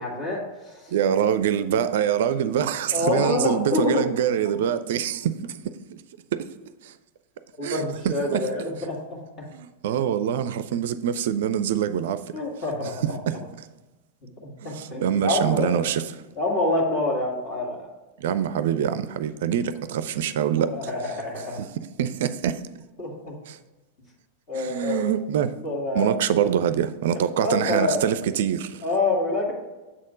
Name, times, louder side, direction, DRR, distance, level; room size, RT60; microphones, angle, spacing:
voice 1, 0.0-0.9 2.9-4.1 7.6-9.5 12.3-13.0 14.4-15.8 16.4-17.9 20.7-21.6 23.0-23.4 24.5-25.1 25.6-26.1 27.1-28.1 28.8-29.5, left 2 dB, 40° left, 1.8 m, -27 dB
voice 2, 0.9-6.0 6.3-6.5 6.8-6.9 7.6-8.5 9.5-12.2 13.0-13.4 14.6-16.0 18.2-20.9 21.6-22.6 23.5-23.6 24.5-25.5 25.9-28.8, right 9 dB, 55° right, 0.4 m, -25 dB
7.4 x 4.2 x 5.1 m
figure-of-eight pair, 90°, 0 cm